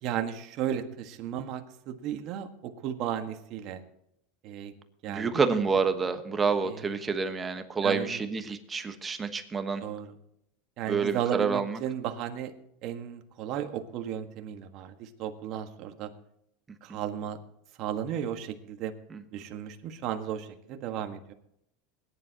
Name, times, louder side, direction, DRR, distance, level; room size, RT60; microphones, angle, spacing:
voice 1, 0.0-3.8 4.4-4.7 5.0-5.4 6.6-6.8 7.8-8.2 9.8-10.1 10.8-12.5 12.8-16.1 16.8-17.4 17.8-18.9 19.3-21.3, right 9 dB, 50° right, 5 dB, 1.5 m, -34 dB
voice 2, 5.1-9.8 10.9-11.8 16.9-17.0 19.1-19.2, right 5 dB, 20° right, 8 dB, 1.2 m, -28 dB
20.5 x 10.5 x 2.9 m, 0.75 s
supercardioid pair, 130°, 0 cm